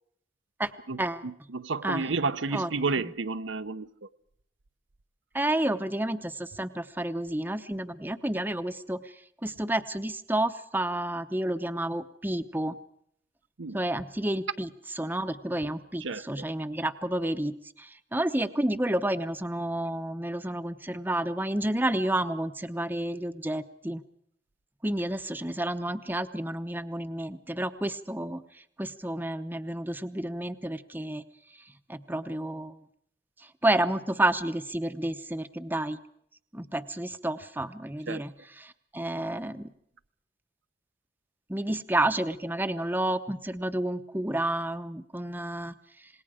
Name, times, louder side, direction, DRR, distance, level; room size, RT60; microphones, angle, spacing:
voice 1, 0.9-4.1 13.6-13.8 16.0-16.4 38.1-38.2, right 4 dB, 75° right, 0.8 m, -31 dB
voice 2, 5.3-9.1 9.4-12.8 13.7-14.7 15.0-24.0 24.8-31.2 31.9-32.8 33.4-36.0 36.5-38.3 38.6-39.7 41.5-46.1, right 1 dB, 10° right, 0.8 m, -30 dB
27.0 x 20.5 x 5.0 m
head